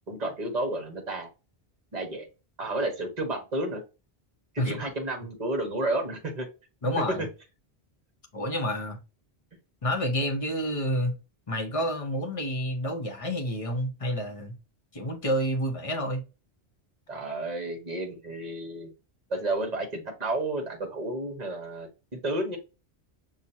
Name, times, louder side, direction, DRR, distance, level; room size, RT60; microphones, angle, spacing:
voice 1, 0.1-1.3 1.9-2.3 2.6-3.8 4.5-6.5 7.2-7.3 17.1-18.9 19.3-22.6, right 2 dB, 40° right, 1.3 m, -31 dB
voice 2, 6.8-7.3 8.3-9.0 9.8-11.1 11.5-14.6 14.9-16.2, equal, 35° left, 1.0 m, -29 dB
6.1 x 2.4 x 2.7 m
omnidirectional pair, 1.1 m